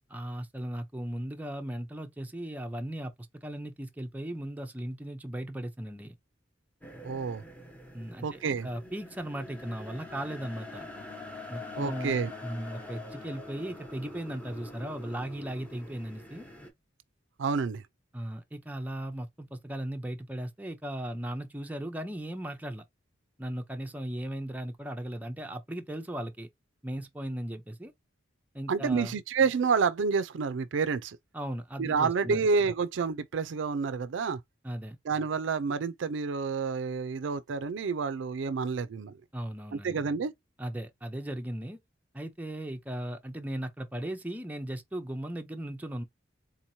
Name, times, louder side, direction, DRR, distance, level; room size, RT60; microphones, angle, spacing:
voice 1, 0.1-6.2 7.9-10.9 11.5-16.5 18.1-22.8 23.4-26.5 26.8-27.9 28.5-29.1 31.3-32.4 34.6-35.0 39.3-40.0 40.6-41.8 42.1-46.0, right 1 dB, 10° right, 0.5 m, -37 dB
sound 1, 6.8-16.7, left 2 dB, 5° left, 0.9 m, -45 dB
voice 2, 7.0-7.4 8.2-8.7 11.8-12.3 17.4-17.8 28.7-31.2 31.8-34.4 35.1-39.2 39.7-40.3, right 5 dB, 75° right, 0.4 m, -29 dB
3.9 x 2.9 x 2.7 m
head